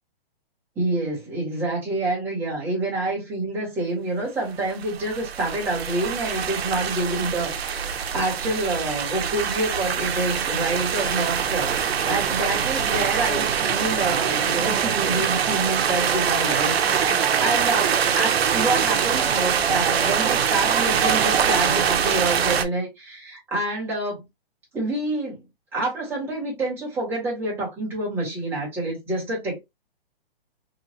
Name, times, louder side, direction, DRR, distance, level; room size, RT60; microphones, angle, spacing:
voice 1, 0.8-24.2 24.7-25.4 25.7-29.6, right 2 dB, 5° right, 1.0 m, -27 dB
sound 1, 4.6-22.6, right 8 dB, 90° right, 0.6 m, -23 dB
3.0 x 2.4 x 2.7 m
hypercardioid pair, 160°, 30 cm